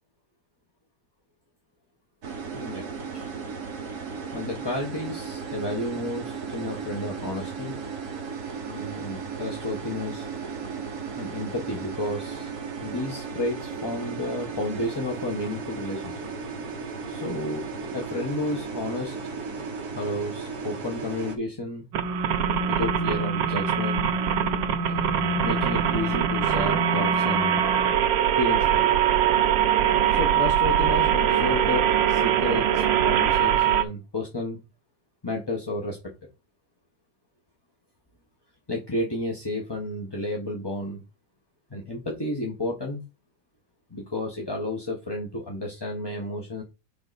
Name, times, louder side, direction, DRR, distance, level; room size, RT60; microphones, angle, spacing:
sound 1, 2.2-21.4, right 5 dB, 55° right, 1.7 m, -35 dB
voice 1, 2.5-2.8 3.1-3.3 4.3-7.7 8.7-10.3 11.2-12.5 12.8-16.3 17.1-17.6 17.9-19.2 19.9-21.8 22.7-24.1 24.8-27.6 28.4-29.0 30.1-34.6 35.2-36.1 38.7-41.0 41.7-43.0 43.9-46.6, left 1 dB, 15° left, -1 dB, 1.1 m, -31 dB
sound 2, 21.9-33.8, right 8 dB, 75° right, 1.5 m, -22 dB
9.8 x 4.0 x 4.1 m, 0.26 s
omnidirectional pair, 2.1 m